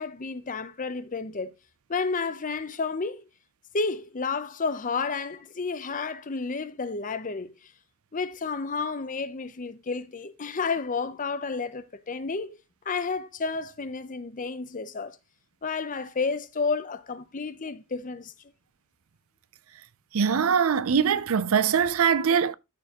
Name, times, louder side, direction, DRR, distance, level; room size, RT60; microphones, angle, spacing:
voice 1, 0.0-1.5 1.9-3.2 3.7-7.5 8.1-12.6 12.9-15.2 15.6-18.3, left 4 dB, 35° left, 0.6 m, -31 dB
voice 2, 20.1-22.5, right 7 dB, 65° right, 0.5 m, -22 dB
13.0 x 4.6 x 2.9 m
head